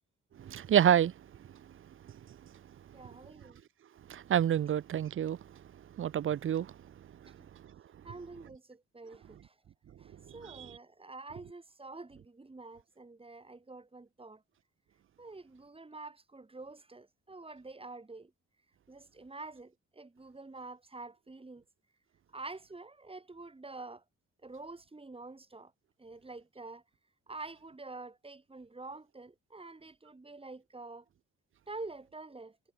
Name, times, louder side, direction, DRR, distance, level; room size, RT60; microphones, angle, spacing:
voice 1, 0.4-1.1 4.1-5.4 6.0-6.7 10.5-10.7, right 10 dB, 45° right, 0.7 m, -27 dB
voice 2, 2.9-3.6 7.4-7.5 8.0-9.5 10.0-14.4 15.2-18.3 18.9-21.6 22.3-24.0 24.4-25.7 26.0-26.8 27.3-31.0 31.7-32.6, right 3 dB, 20° right, 5.3 m, -47 dB
cardioid pair, 90°, 30 cm